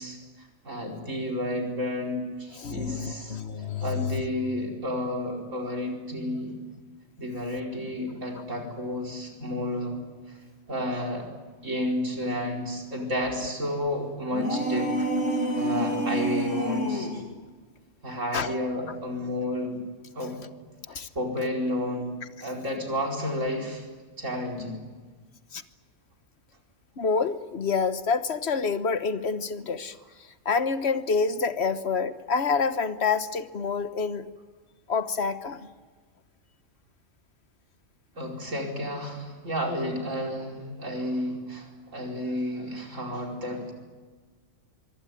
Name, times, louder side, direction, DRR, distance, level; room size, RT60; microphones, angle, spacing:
voice 1, 0.0-3.4 3.8-6.6 7.2-10.0 10.3-10.4 10.7-11.3 11.6-17.2 18.0-19.8 20.2-20.4 20.9-23.8 24.2-24.8 38.2-43.7, left 1 dB, 85° right, 1 dB, 5.3 m, -31 dB
voice 2, 2.6-4.2 18.3-18.5 20.9-21.1 22.4-22.5 25.5-25.6 27.0-34.3 34.9-35.7, left 5 dB, 60° left, 11 dB, 1.5 m, -28 dB
sound 1, 14.3-17.3, right 1 dB, 80° left, 3.1 m, -27 dB
24.0 x 24.0 x 9.3 m, 1.4 s
omnidirectional pair, 1.3 m